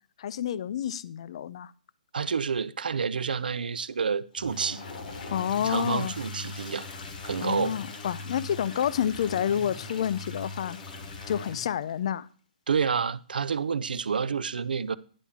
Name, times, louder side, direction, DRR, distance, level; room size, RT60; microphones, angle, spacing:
voice 1, 0.2-1.7 5.3-6.1 7.4-10.8 11.3-12.3, left 9 dB, 40° left, 0.4 m, -29 dB
voice 2, 2.1-4.8 5.6-6.9 7.2-7.7 12.7-15.0, right 6 dB, 85° right, 0.5 m, -29 dB
Toilet flush, 4.3-12.0, left 4 dB, 70° left, 1.6 m, -45 dB
sound 1, 4.4-11.8, left 3 dB, 20° left, 0.9 m, -42 dB
10.0 x 3.6 x 7.0 m
hypercardioid pair, 165°, 5 cm